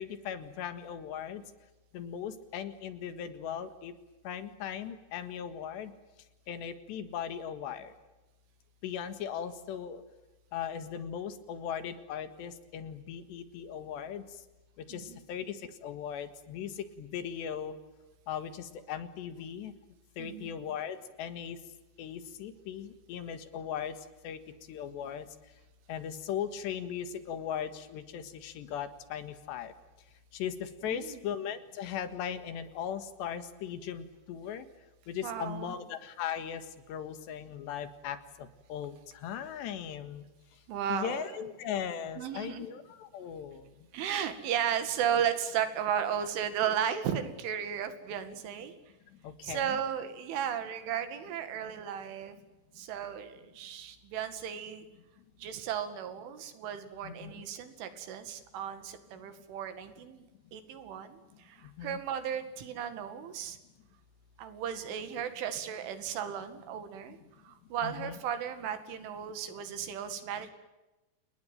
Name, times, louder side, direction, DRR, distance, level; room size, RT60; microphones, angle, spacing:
voice 1, 0.0-1.4 1.9-3.9 4.3-5.9 6.5-7.9 8.8-10.0 10.5-14.2 14.9-17.7 18.3-19.7 20.2-21.6 22.0-24.0 24.2-24.4 24.7-25.3 25.9-29.7 30.3-34.7 35.1-40.3 40.9-43.7 49.2-49.8 57.0-57.5 61.6-62.0 67.8-68.2, left 8 dB, 70° left, 10 dB, 3.7 m, -38 dB
voice 2, 20.2-20.5 30.8-31.2 35.2-35.8 40.7-41.4 42.2-42.7 43.9-48.7 49.4-52.4 52.8-54.9 55.4-60.3 60.5-63.6 64.4-67.2 67.4-70.5, right 9 dB, 90° right, 9 dB, 4.7 m, -35 dB
29.0 x 20.5 x 9.2 m, 1.1 s
omnidirectional pair, 5.4 m